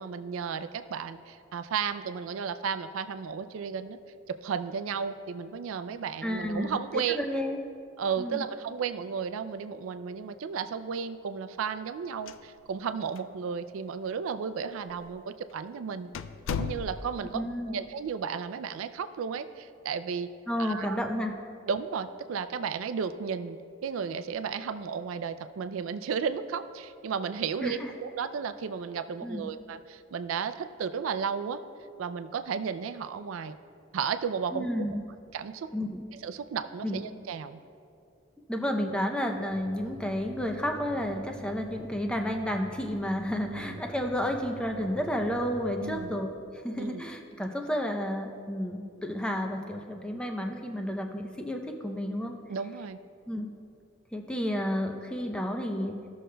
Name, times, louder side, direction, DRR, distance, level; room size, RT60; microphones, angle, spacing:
voice 1, 0.0-4.0 4.3-7.2 8.0-16.1 16.5-20.3 20.6-21.0 21.7-31.6 32.0-33.6 33.9-34.7 35.3-35.7 36.2-37.6 43.5-43.8 45.8-46.1 46.8-47.0 52.5-53.0, right 6 dB, 80° right, 11 dB, 0.4 m, -34 dB
voice 2, 6.2-7.6 8.2-8.4 17.3-17.8 20.5-21.3 27.6-27.9 29.2-29.5 34.5-35.0 35.7-36.0 36.8-37.0 38.5-52.3 53.3-53.5 54.1-56.0, equal, 5° left, 3 dB, 0.5 m, -31 dB
sound 1, 12.1-12.9 13.2-13.3 14.0-14.1 14.9-15.1 15.5-15.6 16.1-17.3, left 6 dB, 70° left, 0.3 m, -35 dB
sound 2, 39.5-46.1, equal, 35° left, 1.1 m, -46 dB
15.5 x 6.4 x 2.2 m, 2.5 s
head